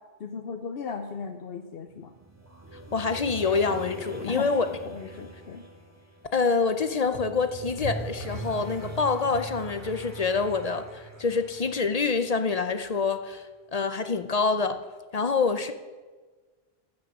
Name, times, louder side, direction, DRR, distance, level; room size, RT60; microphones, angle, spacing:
voice 1, 0.2-2.1 4.2-4.5 4.8-5.6, left 5 dB, 70° left, 5 dB, 0.9 m, -36 dB
sound 1, 1.9-12.7, right 2 dB, 15° right, 1.6 m, -41 dB
voice 2, 2.9-4.7 6.3-13.4 13.7-14.8 15.1-15.7, left 4 dB, 45° left, 9 dB, 0.6 m, -26 dB
14.0 x 6.5 x 6.2 m, 1.4 s
omnidirectional pair, 1.1 m